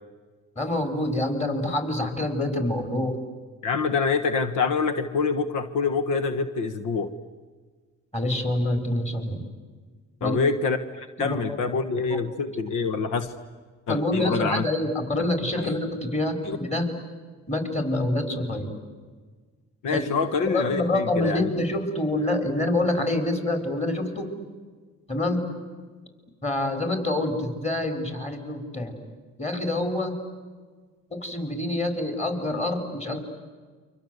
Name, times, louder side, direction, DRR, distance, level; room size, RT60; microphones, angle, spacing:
voice 1, 0.6-3.2 8.1-9.5 10.2-10.4 11.2-11.6 12.1-12.2 13.9-16.9 17.5-18.7 19.9-20.0 20.5-24.3 25.1-25.5 26.4-29.0 29.4-30.2 31.1-33.2, left 1 dB, 20° left, 5 dB, 5.3 m, -26 dB
voice 2, 3.6-7.1 10.2-13.3 13.9-14.6 15.6-15.7 16.4-16.6 19.8-21.5, left 4 dB, 85° left, 9 dB, 1.5 m, -26 dB
29.5 x 25.0 x 8.2 m, 1.5 s
cardioid pair, 90°, 30 cm